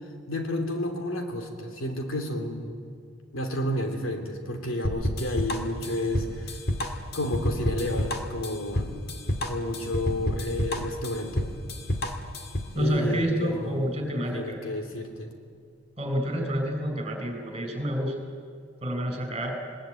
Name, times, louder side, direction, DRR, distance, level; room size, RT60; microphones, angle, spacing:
voice 1, 0.3-2.7 3.3-6.6 7.1-9.0 9.4-11.5 12.7-15.3, left 1 dB, 80° left, 4 dB, 3.0 m, -31 dB
sound 1, 4.8-12.8, left 1 dB, 50° left, 1.8 m, -29 dB
voice 2, 12.7-14.6 16.0-18.1 18.8-19.5, equal, 30° right, 3 dB, 4.9 m, -28 dB
21.0 x 20.5 x 9.2 m, 2.3 s
head